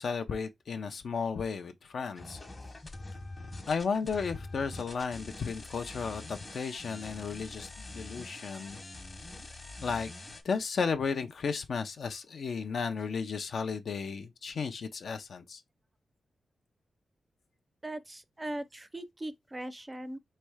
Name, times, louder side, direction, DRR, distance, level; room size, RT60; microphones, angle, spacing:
voice 1, 0.0-2.4 3.7-8.8 9.8-10.1 10.4-15.6, left 5 dB, 65° left, 0.6 m, -34 dB
sound 1, 2.2-10.4, left 2 dB, 30° left, 1.1 m, -45 dB
voice 2, 17.8-20.2, right 1 dB, 15° right, 0.5 m, -39 dB
3.4 x 3.2 x 4.8 m
wide cardioid pair, 115°, 0 cm